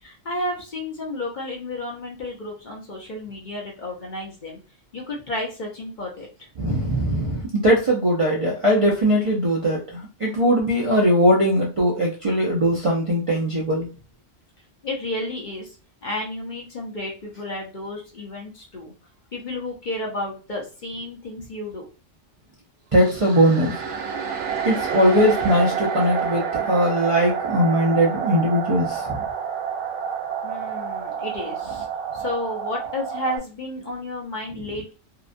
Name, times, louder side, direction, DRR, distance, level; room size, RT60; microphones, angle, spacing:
voice 1, 0.0-4.6 4.9-6.5 14.8-15.8 16.0-18.9 19.3-21.9 30.4-31.9 32.1-34.9, left 1 dB, 50° left, -1 dB, 0.8 m, -32 dB
voice 2, 6.6-13.9 22.9-23.8 24.6-29.2, equal, 40° right, -4 dB, 0.5 m, -20 dB
sound 1, 22.9-33.4, right 7 dB, 85° right, 1.0 m, -28 dB
2.8 x 2.2 x 2.5 m, 0.34 s
omnidirectional pair, 1.2 m